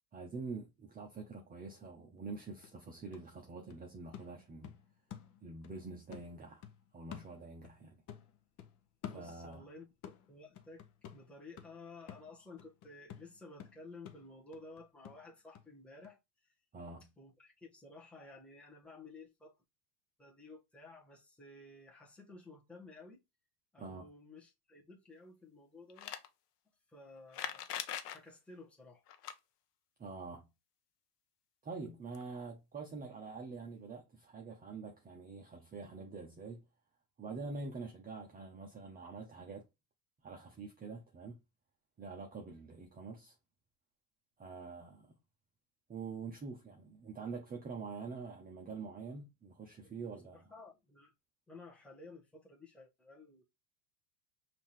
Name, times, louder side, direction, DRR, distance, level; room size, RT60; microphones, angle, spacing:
voice 1, 0.1-4.8 5.4-6.7 6.9-8.0 9.1-9.7 16.7-17.1 23.8-24.0 30.0-30.5 31.6-36.6 37.2-39.6 40.2-41.4 42.0-43.3 44.4-45.1 45.9-50.4, right 4 dB, 20° right, 0.9 m, -46 dB
sound 1, 2.2-2.3 2.6-5.8 6.1-9.7 10.0-15.7 16.0-16.1, left 9 dB, 40° left, 0.8 m, -52 dB
voice 2, 9.0-10.8 11.1-16.5 17.2-19.5 20.2-23.2 23.7-26.2 26.9-27.7 27.9-29.0 49.8-51.1 51.5-53.4, left 3 dB, ahead, 1.3 m, -54 dB
sound 2, 25.9-26.3 27.3-28.2 29.1-29.3 31.9-32.0 32.1-32.2 33.4-33.5, left 10 dB, 75° left, 0.8 m, -41 dB
5.4 x 2.9 x 3.1 m
hypercardioid pair, 95°, 47 cm